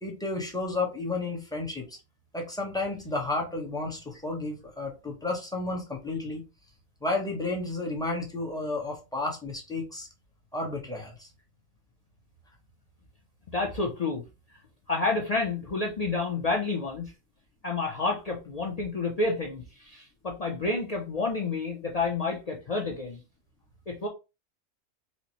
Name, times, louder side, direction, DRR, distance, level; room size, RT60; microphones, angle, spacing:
voice 1, 0.0-2.0 2.3-6.4 7.0-10.1 10.5-11.3, left 2 dB, 5° left, 0.5 m, -32 dB
voice 2, 13.5-14.2 14.9-17.1 17.6-23.2 23.9-24.1, left 3 dB, 65° left, 0.3 m, -29 dB
4.3 x 2.1 x 2.7 m
omnidirectional pair, 1.4 m